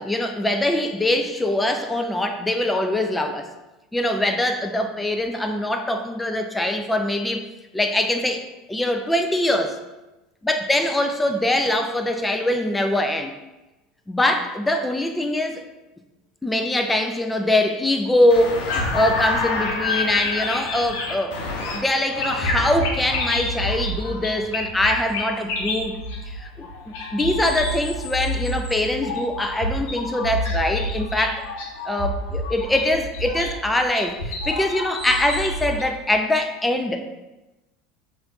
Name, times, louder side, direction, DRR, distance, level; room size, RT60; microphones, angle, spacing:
voice 1, 0.0-3.5 3.9-7.4 7.7-8.4 8.7-9.7 10.4-13.3 14.1-15.6 16.4-21.4 21.7-25.9 26.3-26.7 27.1-31.4 31.8-37.1, left 1 dB, 10° left, 6 dB, 0.5 m, -23 dB
sound 1, 18.3-35.8, left 2 dB, 65° left, 0.9 m, -28 dB
6.8 x 2.6 x 2.9 m, 1.0 s
hypercardioid pair, 75°, 0 cm